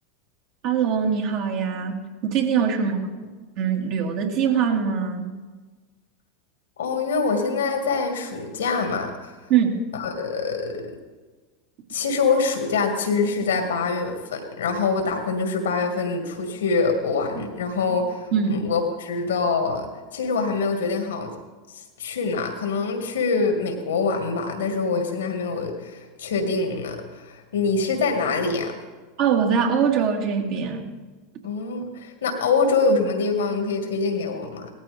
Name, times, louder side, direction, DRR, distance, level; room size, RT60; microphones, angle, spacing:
voice 1, 0.6-3.0 3.6-5.3 9.5-9.7 17.4-17.5 18.3-18.5 29.2-30.9, right 7 dB, 55° right, 1 dB, 2.3 m, -22 dB
voice 2, 6.8-9.4 9.9-10.9 11.9-21.3 21.7-28.8 31.4-34.7, left 4 dB, 80° left, 5 dB, 2.1 m, -25 dB
18.0 x 13.5 x 3.6 m, 1.3 s
hypercardioid pair, 90°, 0 cm